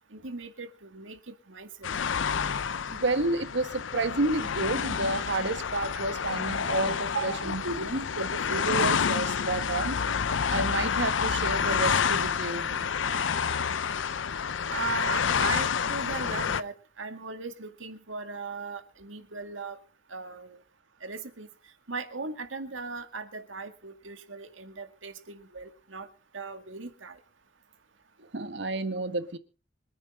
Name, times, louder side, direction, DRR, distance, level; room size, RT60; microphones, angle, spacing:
voice 1, 0.1-1.9 6.5-6.6 7.1-7.5 8.7-8.8 14.7-19.8 20.1-20.6 21.0-21.5 21.9-26.1 26.3-27.2, right 4 dB, 80° right, 2.1 m, -38 dB
sound 1, 1.8-16.6, left 6 dB, 75° left, 0.6 m, -29 dB
voice 2, 2.9-10.0 10.5-13.7 28.2-29.4, right 2 dB, 65° right, 1.5 m, -31 dB
25.5 x 9.7 x 3.7 m
head